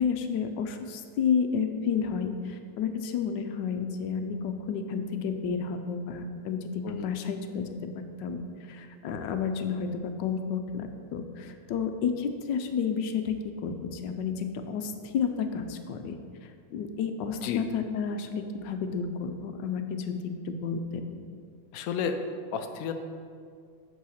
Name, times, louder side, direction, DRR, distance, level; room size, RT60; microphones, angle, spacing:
voice 1, 0.0-8.4 8.7-16.2 16.7-21.2, left 6 dB, 75° left, 7 dB, 1.2 m, -31 dB
voice 2, 21.7-22.2 22.5-22.9, left 7 dB, 90° left, 6 dB, 0.7 m, -31 dB
8.2 x 4.1 x 6.4 m, 2.2 s
omnidirectional pair, 2.1 m